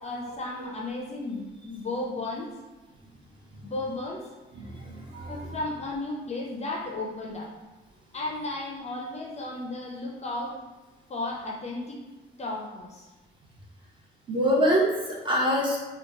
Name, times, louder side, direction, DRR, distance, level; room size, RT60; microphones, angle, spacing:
voice 1, 0.0-2.5 3.6-4.3 5.3-7.5 8.1-10.6 11.1-12.0 12.4-13.1, left 2 dB, 35° left, -1 dB, 0.5 m, -34 dB
voice 2, 4.5-5.6 14.3-15.8, equal, 25° right, -4 dB, 1.0 m, -25 dB
2.8 x 2.2 x 3.7 m, 1.2 s
cardioid pair, 90°, 20 cm